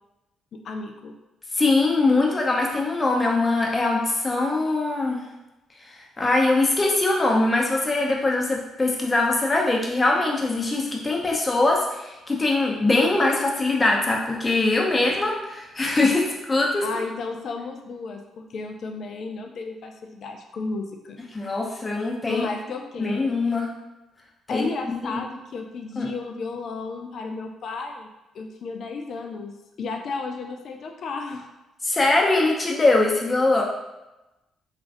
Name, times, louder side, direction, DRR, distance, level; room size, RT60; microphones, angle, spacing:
voice 1, 0.5-1.1 16.8-21.2 22.3-23.2 24.5-28.1 28.3-29.5 29.8-31.5, left 4 dB, 60° left, 4 dB, 0.3 m, -33 dB
voice 2, 1.5-5.2 6.2-16.8 21.3-22.5 23.0-23.7 24.5-25.2 26.0-26.1 31.8-33.6, left 2 dB, 30° left, -1 dB, 0.7 m, -22 dB
3.0 x 2.4 x 2.6 m, 1.0 s
hypercardioid pair, 45°, 0 cm